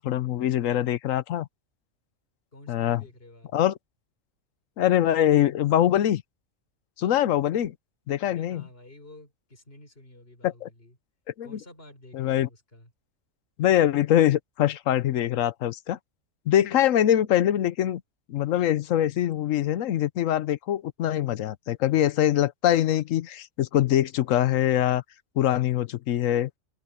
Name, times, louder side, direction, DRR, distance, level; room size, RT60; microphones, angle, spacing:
voice 1, 0.0-1.5 2.7-3.0 3.5-3.7 4.8-6.2 7.0-7.7 8.1-8.6 10.4-10.7 11.4-11.6 12.1-12.5 13.6-16.0 16.5-18.0 18.3-25.0 25.4-26.5, left 11 dB, 75° left, 1.1 m, -23 dB
voice 2, 2.5-3.5 8.3-11.0 11.4-12.9, left 1 dB, 45° left, 5.1 m, -50 dB
omnidirectional pair, 1.4 m